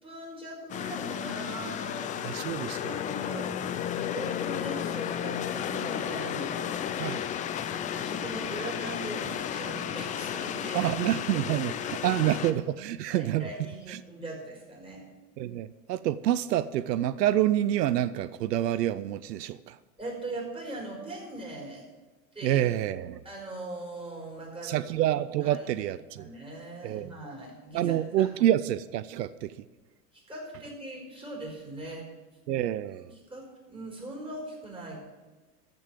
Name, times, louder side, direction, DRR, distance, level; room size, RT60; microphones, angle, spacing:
voice 1, 0.0-2.2 2.5-3.5 4.1-6.8 7.7-10.9 11.3-11.9 13.1-15.0 20.0-21.9 22.3-22.6 23.2-24.9 25.4-25.7 26.2-28.3 30.1-32.1 33.1-35.0, right 2 dB, 10° right, -1 dB, 4.6 m, -40 dB
sound 1, 0.7-12.5, left 9 dB, 20° left, 0.3 m, -33 dB
voice 2, 2.2-3.0 7.0-7.3 10.7-13.5 13.9-14.0 15.4-19.8 22.4-23.2 24.6-26.3 26.8-27.2 27.7-29.5 32.5-33.1, right 12 dB, 90° right, 15 dB, 0.6 m, -28 dB
14.0 x 5.3 x 7.6 m, 1.3 s
hypercardioid pair, 105°, 47 cm